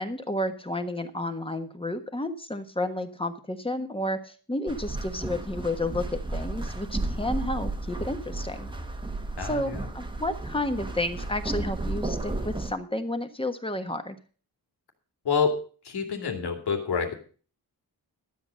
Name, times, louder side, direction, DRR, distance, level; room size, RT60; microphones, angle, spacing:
voice 1, 0.0-8.7 9.4-14.2, left 1 dB, 15° left, 7 dB, 1.4 m, -31 dB
sound 1, 4.7-12.7, right 2 dB, 10° right, 1.2 m, -33 dB
voice 2, 9.4-9.9 15.2-15.6 15.8-17.1, left 5 dB, 85° left, 5 dB, 2.7 m, -27 dB
13.0 x 8.1 x 6.4 m, 0.40 s
wide cardioid pair, 120°, 38 cm